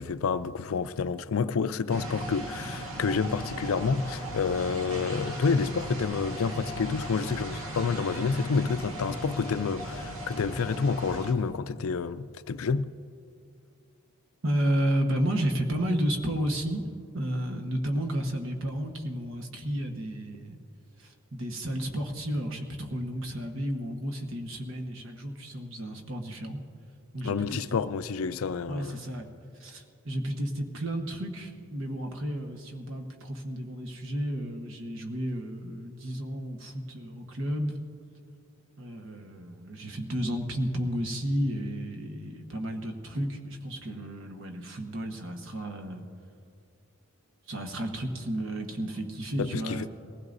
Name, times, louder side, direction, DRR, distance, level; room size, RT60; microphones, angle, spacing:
voice 1, 0.0-12.9 27.2-29.0 49.4-49.9, left 5 dB, 70° left, 0.4 m, -29 dB
sound 1, 1.9-11.3, equal, 80° right, 1.7 m, -37 dB
voice 2, 14.4-16.8 17.1-20.6 21.0-26.6 27.1-27.8 28.7-29.3 29.6-37.8 38.8-46.0 47.5-49.9, equal, 60° right, 1.2 m, -32 dB
21.5 x 15.5 x 2.6 m
head